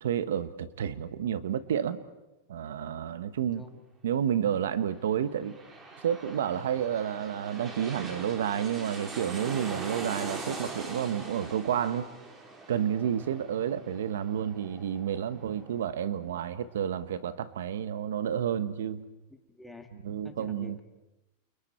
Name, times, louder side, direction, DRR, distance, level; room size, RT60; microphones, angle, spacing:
voice 1, 0.0-2.0 2.5-3.6 4.0-5.6 6.0-12.1 12.7-19.0 20.0-20.8, right 9 dB, 90° right, 13 dB, 1.2 m, -30 dB
sound 1, 5.1-16.4 16.8-16.9, right 3 dB, 20° right, 3.9 m, -42 dB
voice 2, 19.3-19.9 20.2-20.8, left 2 dB, 5° left, 4 dB, 2.2 m, -48 dB
30.0 x 29.0 x 4.5 m, 0.98 s
supercardioid pair, 150°, 0 cm